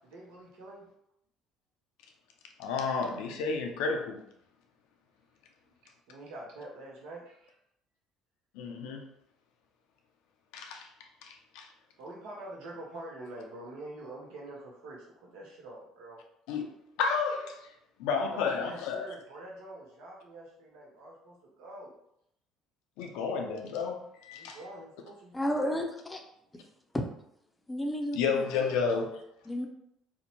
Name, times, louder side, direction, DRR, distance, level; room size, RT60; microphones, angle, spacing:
voice 1, 0.0-0.8 6.1-7.6 12.0-16.2 18.3-21.9 24.4-25.3 25.6-25.9 28.6-28.8, right 1 dB, 75° right, -3 dB, 0.6 m, -46 dB
voice 2, 2.6-4.2 8.5-9.0 10.5-11.7 16.5-16.7 17.0-19.1 23.0-24.6 28.1-29.1, left 5 dB, 75° left, 3 dB, 0.3 m, -32 dB
voice 3, 25.3-25.8 26.1-26.2 26.9-27.0 27.7-28.4 29.5-29.7, equal, 15° left, 3 dB, 0.5 m, -31 dB
2.6 x 2.1 x 2.8 m, 0.75 s
hypercardioid pair, 70°, 0 cm